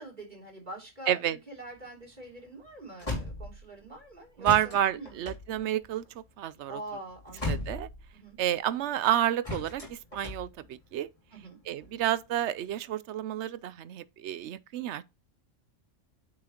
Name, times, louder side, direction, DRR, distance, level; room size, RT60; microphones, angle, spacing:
voice 1, 0.0-5.2 6.7-7.6 8.1-8.4 11.3-11.6, right 2 dB, 35° right, 3.4 m, -45 dB
voice 2, 1.1-1.4 4.4-6.0 6.4-6.8 7.5-7.9 8.4-11.1 11.7-15.0, right 11 dB, 70° right, 0.8 m, -30 dB
sound 1, 1.6-4.0 4.4-8.4 9.4-11.1 11.6-12.6, left 2 dB, 25° left, 3.0 m, -38 dB
8.6 x 5.7 x 2.9 m
omnidirectional pair, 1.3 m